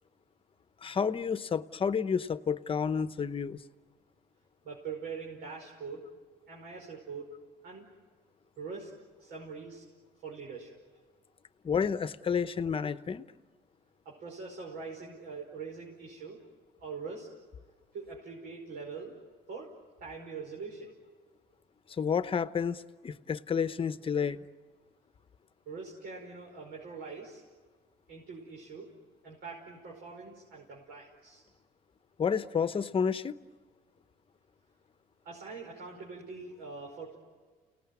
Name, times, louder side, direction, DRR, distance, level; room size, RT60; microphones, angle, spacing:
voice 1, 0.8-3.6 11.6-13.2 21.9-24.4 32.2-33.3, left 6 dB, 30° left, 13 dB, 1.0 m, -30 dB
voice 2, 4.6-6.1 6.5-7.3 7.6-7.8 8.6-8.9 9.2-9.8 10.2-10.8 14.1-16.4 16.8-17.3 17.9-19.2 19.5-19.7 20.0-20.9 25.7-27.4 28.1-28.9 29.2-31.4 35.2-37.2, right 4 dB, 70° right, -2 dB, 5.5 m, -43 dB
30.0 x 19.0 x 9.7 m, 1.5 s
cardioid pair, 110°, 17 cm